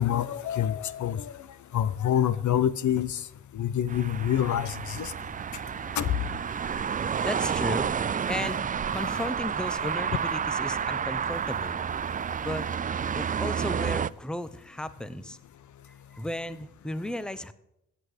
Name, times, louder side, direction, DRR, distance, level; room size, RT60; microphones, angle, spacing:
voice 1, 0.0-1.3 1.7-3.2 3.5-5.1 6.0-6.1, left 10 dB, 65° left, 16 dB, 0.7 m, -26 dB
sound 1, 3.9-14.1, right 7 dB, 25° right, 0.4 m, -30 dB
voice 2, 5.3-6.0 6.4-7.9 8.3-8.6 8.9-11.8 12.4-12.6 13.1-15.4 15.9-17.5, left 1 dB, 5° left, 14 dB, 0.9 m, -35 dB
15.5 x 8.5 x 5.0 m, 0.83 s
cardioid pair, 70°, 31 cm